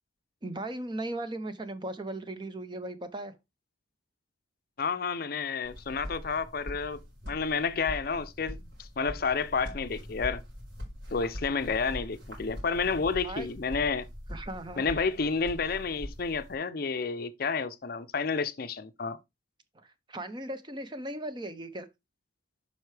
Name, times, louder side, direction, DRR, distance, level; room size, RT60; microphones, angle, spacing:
voice 1, 0.4-3.4 13.2-13.5 14.3-14.8 19.7-21.9, right 1 dB, 25° right, 0.6 m, -37 dB
voice 2, 4.8-10.4 11.1-14.1 14.8-19.2, left 5 dB, 50° left, 0.5 m, -30 dB
sound 1, 5.6-16.6, equal, 80° right, 4.4 m, -42 dB
7.9 x 5.5 x 3.3 m
head